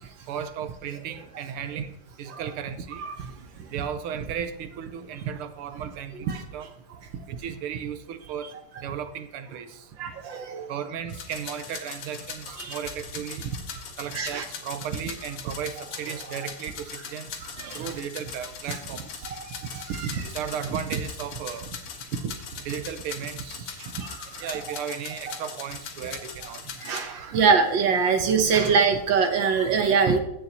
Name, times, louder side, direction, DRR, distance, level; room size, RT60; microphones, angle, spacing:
voice 1, 0.3-1.9 2.2-3.1 3.5-6.7 7.3-8.5 8.8-9.9 10.7-13.5 14.0-17.4 17.7-19.3 19.6-19.7 20.0-21.8 22.1-24.1 24.4-26.6 27.3-27.4 28.5-28.7 29.7-30.2, right 8 dB, 85° right, 10 dB, 1.7 m, -34 dB
voice 2, 10.0-10.6 12.6-12.8 14.1-14.4 17.6-17.9 19.2-19.4 19.7-19.8 23.8-23.9 26.8-30.2, right 5 dB, 65° right, 6 dB, 1.5 m, -23 dB
sound 1, 11.1-27.0, left 6 dB, 80° left, 2.2 m, -40 dB
15.5 x 6.8 x 2.9 m, 0.83 s
omnidirectional pair, 2.4 m